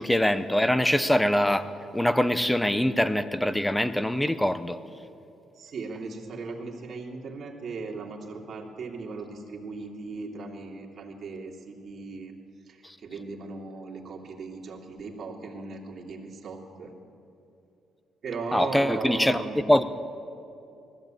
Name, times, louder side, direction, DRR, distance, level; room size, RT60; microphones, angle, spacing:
voice 1, 0.0-4.8 18.5-19.4 19.7-19.8, left 1 dB, 5° left, 13 dB, 0.7 m, -23 dB
voice 2, 5.5-12.3 12.7-16.9 18.2-19.7, right 4 dB, 45° right, -1 dB, 2.6 m, -37 dB
19.5 x 15.0 x 8.9 m, 2.7 s
cardioid pair, 155°, 0 cm